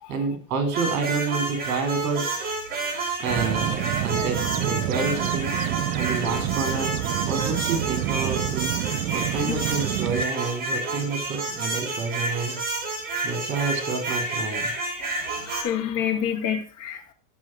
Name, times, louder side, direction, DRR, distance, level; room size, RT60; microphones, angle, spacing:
voice 1, 0.1-2.3 3.2-5.5 5.9-6.9 7.3-8.7 9.1-12.6 13.2-14.7, right 4 dB, 40° right, 6 dB, 4.6 m, -29 dB
sound 1, 0.7-15.6, right 3 dB, 20° right, 4.0 m, -29 dB
sound 2, 3.3-10.2, right 13 dB, 65° right, 1.0 m, -28 dB
voice 2, 14.9-17.1, left 9 dB, 40° left, 3 dB, 2.5 m, -29 dB
12.0 x 6.2 x 6.3 m, 0.41 s
hypercardioid pair, 115°, 45 cm